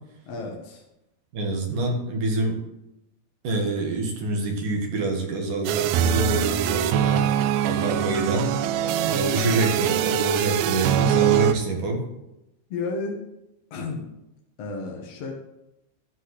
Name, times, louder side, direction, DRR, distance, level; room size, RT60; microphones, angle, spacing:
voice 1, 0.2-0.8 12.7-13.2 13.7-14.1 14.6-15.3, left 3 dB, 55° left, 0 dB, 1.9 m, -32 dB
voice 2, 1.3-2.6 3.4-7.2 7.6-8.5 9.0-12.0, right 2 dB, 60° right, 1 dB, 3.1 m, -26 dB
sound 1, 5.7-11.5, right 10 dB, 80° right, 2.5 m, -23 dB
14.0 x 5.7 x 8.0 m, 0.91 s
omnidirectional pair, 4.6 m